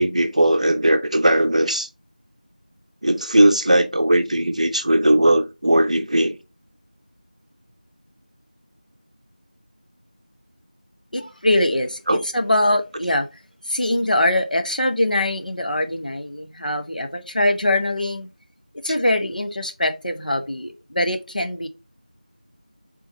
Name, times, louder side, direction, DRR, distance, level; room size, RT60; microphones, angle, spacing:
voice 1, 0.0-1.9 3.0-6.3 12.1-12.2, right 1 dB, 50° right, 0.6 m, -18 dB
voice 2, 11.1-13.3 13.7-18.3 18.8-21.7, left 1 dB, 70° left, 0.8 m, -22 dB
3.5 x 3.3 x 2.9 m
figure-of-eight pair, 175°, 5 cm